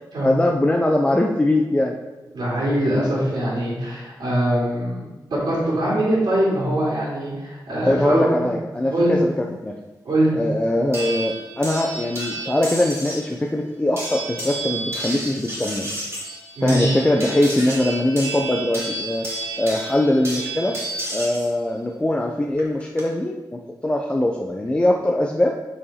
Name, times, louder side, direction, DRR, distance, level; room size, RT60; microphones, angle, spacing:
voice 1, 0.2-2.0 7.8-9.3 9.6-9.8 10.3-15.9 16.6-19.3 19.6-20.8 21.1-25.5, left 1 dB, 15° left, 1 dB, 0.4 m, -21 dB
voice 2, 2.3-5.0 5.3-8.5 8.9-9.1 10.0-10.3 16.6-17.0, right 1 dB, 75° right, -7 dB, 2.6 m, -22 dB
sound 1, 10.9-13.3 14.0-21.5 22.6-23.0, right 2 dB, 35° right, 2.3 m, -31 dB
7.4 x 4.9 x 4.2 m, 1.2 s
wide cardioid pair, 165°, 8 cm